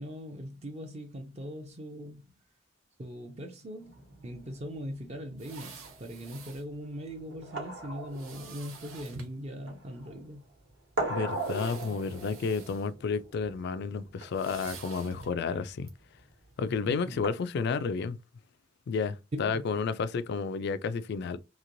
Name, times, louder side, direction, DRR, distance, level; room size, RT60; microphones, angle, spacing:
voice 1, 0.0-2.4 3.0-10.4 16.8-17.2 19.3-19.7, equal, 30° right, 0.5 m, -40 dB
sound 1, 3.8-17.3, right 2 dB, 65° right, 1.1 m, -41 dB
sound 2, 5.4-6.7 8.1-9.4 10.3-10.4 11.2-12.9 13.2-13.5 14.3-15.4 15.9-16.0, right 4 dB, 90° right, 0.9 m, -48 dB
voice 2, 11.1-15.9 16.6-18.2 18.9-21.4, left 5 dB, 55° left, 0.3 m, -31 dB
3.0 x 2.8 x 2.5 m
head